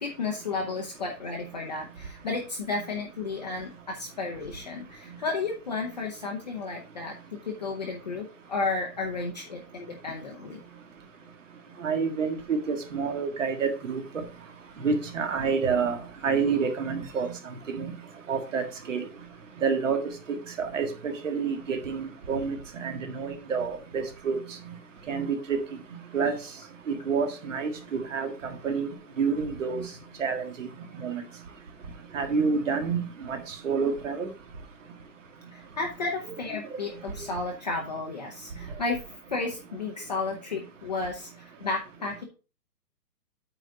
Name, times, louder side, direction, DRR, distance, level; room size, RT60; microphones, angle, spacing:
voice 1, 0.0-10.6 35.5-42.2, left 3 dB, 25° left, -1 dB, 0.8 m, -33 dB
voice 2, 11.8-14.0 14.8-16.0 16.2-17.3 17.7-17.9 18.3-18.6 18.9-19.0 19.6-20.0 20.3-24.4 25.1-25.6 26.1-26.3 26.9-28.9 29.2-29.8 30.2-30.7 31.0-31.2 32.1-33.4 33.6-34.3, right 5 dB, 45° right, 5 dB, 1.8 m, -28 dB
8.8 x 4.1 x 4.8 m, 0.33 s
hypercardioid pair, 165°, 50 cm